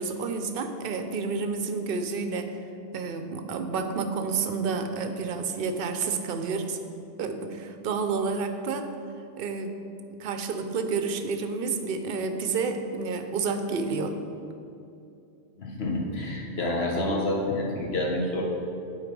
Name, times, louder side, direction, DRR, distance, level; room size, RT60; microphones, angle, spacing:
voice 1, 0.0-2.5 2.9-6.8 7.2-8.9 9.4-9.8 10.2-14.1, right 4 dB, 60° right, 7 dB, 0.7 m, -30 dB
voice 2, 15.6-18.4, left 1 dB, 60° left, -1 dB, 1.4 m, -28 dB
9.2 x 4.0 x 5.3 m, 2.7 s
omnidirectional pair, 1.2 m